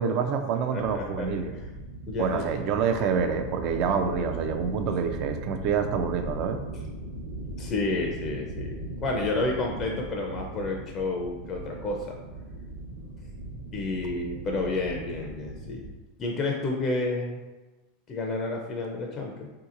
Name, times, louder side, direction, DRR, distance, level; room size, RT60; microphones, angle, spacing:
voice 1, 0.0-1.5 2.2-6.6, right 6 dB, 55° right, 7 dB, 0.4 m, -27 dB
voice 2, 0.7-1.6 2.1-2.6 7.6-12.2 13.7-15.9 16.2-17.4 18.1-19.5, left 2 dB, 35° left, 0 dB, 0.4 m, -30 dB
sound 1, 0.7-15.9, right 2 dB, 90° right, 0.9 m, -39 dB
3.7 x 2.8 x 2.5 m, 1.2 s
hypercardioid pair, 100°, 0 cm